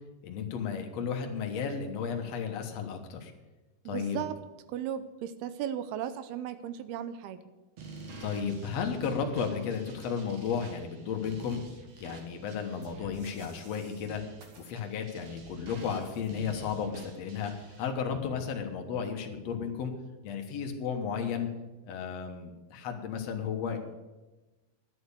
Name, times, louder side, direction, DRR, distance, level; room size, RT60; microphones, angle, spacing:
voice 1, 0.2-3.3 3.9-4.2 8.2-11.6 12.0-14.2 14.6-19.9 20.2-21.5 21.8-23.8, left 6 dB, 65° left, 4 dB, 1.8 m, -33 dB
voice 2, 3.9-4.4 4.7-7.4, right 10 dB, 85° right, 12 dB, 2.6 m, -36 dB
sound 1, 7.8-17.9, right 2 dB, 50° right, 2.2 m, -48 dB
11.5 x 7.7 x 8.3 m, 1.1 s
omnidirectional pair, 4.6 m